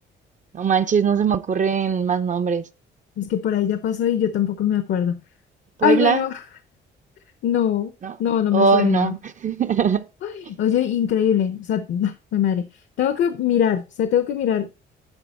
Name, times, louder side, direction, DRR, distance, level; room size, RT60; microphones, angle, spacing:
voice 1, 0.5-2.7 5.8-6.2 8.0-8.1 8.5-9.2 9.4-10.1, right 6 dB, 40° right, 0.6 m, -20 dB
voice 2, 3.2-5.2 5.8-6.3 7.4-7.9 8.2-9.1 10.2-10.3 10.6-12.6 13.0-14.7, left 9 dB, 70° left, 0.9 m, -22 dB
11.0 x 4.6 x 4.3 m
cardioid pair, 90°, 20 cm